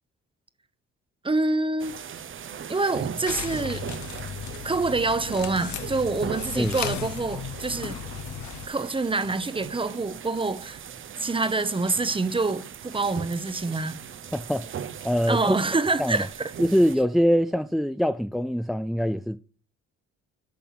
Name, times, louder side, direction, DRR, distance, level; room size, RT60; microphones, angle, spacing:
voice 1, 1.2-2.0 2.7-3.8 4.6-8.0 8.6-10.8 11.2-14.0 15.3-16.5, right 3 dB, 15° right, 0.9 m, -26 dB
sound 1, 1.8-17.0, right 8 dB, 45° right, 0.7 m, -39 dB
sound 2, 3.3-8.7, left 9 dB, 70° left, 1.1 m, -35 dB
voice 2, 14.3-14.8 15.0-15.6 16.0-16.3 16.6-19.4, equal, ahead, 0.4 m, -23 dB
8.6 x 5.5 x 5.8 m
cardioid pair, 90°, 30 cm